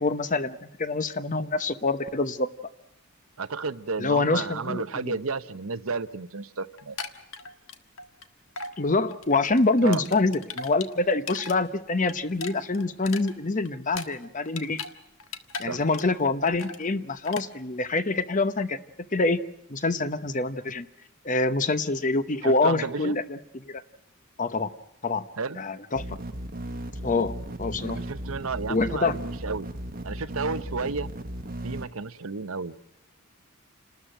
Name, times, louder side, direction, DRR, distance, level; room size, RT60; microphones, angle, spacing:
voice 1, 0.0-2.5 4.0-5.2 8.8-14.8 15.6-18.8 19.1-19.4 19.7-20.9 21.2-23.8 24.4-24.7 25.0-25.3 25.6-26.0 27.0-28.0 28.7-29.1, left 3 dB, 35° left, 12 dB, 0.9 m, -26 dB
voice 2, 3.4-7.0 9.8-10.0 15.6-15.8 22.4-23.2 25.4-25.6 27.9-29.7 30.0-31.1 31.6-32.7, right 4 dB, 70° right, 13 dB, 0.8 m, -32 dB
sound 1, 6.8-8.3 8.6-8.8 9.1-11.6 11.9-14.9 15.2-16.2 16.5-16.8 17.3-17.5, left 4 dB, 70° left, 1.5 m, -38 dB
sound 2, 26.0-31.9, right 1 dB, 40° right, 1.2 m, -36 dB
29.0 x 13.0 x 9.1 m, 0.83 s
head